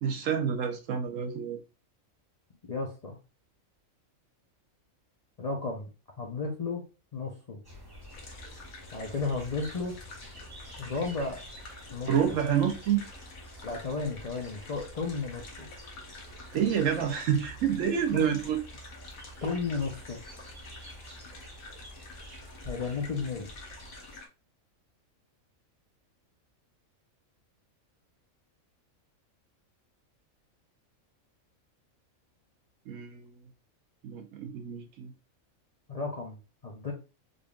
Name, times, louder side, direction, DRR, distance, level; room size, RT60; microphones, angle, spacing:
voice 1, 0.0-1.6 12.1-13.0 16.5-18.6 32.9-33.3 34.0-35.1, right 8 dB, 70° right, 1.0 m, -28 dB
voice 2, 2.7-3.2 5.4-5.9 6.2-6.9 7.1-7.6 8.9-10.0 10.8-11.4 11.9-12.1 13.6-15.7 18.1-18.4 19.4-20.2 22.6-23.5 35.9-36.4 36.6-36.9, left 4 dB, 45° left, 0.5 m, -33 dB
sound 1, 7.6-24.2, right 1 dB, 20° right, 1.1 m, -48 dB
sound 2, 8.1-24.3, left 3 dB, 85° left, 1.4 m, -49 dB
3.8 x 3.4 x 2.3 m
omnidirectional pair, 1.5 m